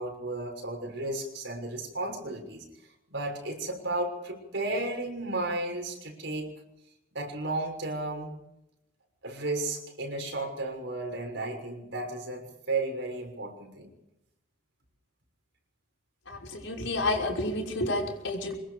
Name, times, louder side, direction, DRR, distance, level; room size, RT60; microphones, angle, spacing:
voice 1, 0.0-2.6 3.1-6.5 7.1-8.3 9.2-13.9, right 2 dB, 65° right, 3 dB, 6.5 m, -33 dB
voice 2, 16.3-18.6, left 2 dB, 70° left, 0 dB, 5.9 m, -30 dB
26.0 x 21.5 x 5.1 m, 0.88 s
head